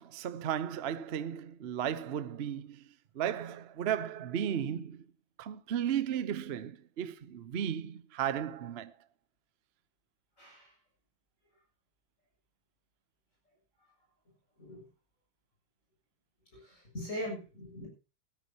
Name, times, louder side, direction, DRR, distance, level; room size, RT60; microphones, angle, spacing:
voice 1, 0.0-2.8 3.1-5.0 5.4-8.9, right 9 dB, 85° right, 0.5 m, -35 dB
voice 2, 10.4-10.7 14.6-14.9 16.5-17.9, equal, 35° left, 7.6 m, -41 dB
18.5 x 13.0 x 2.9 m
omnidirectional pair, 2.3 m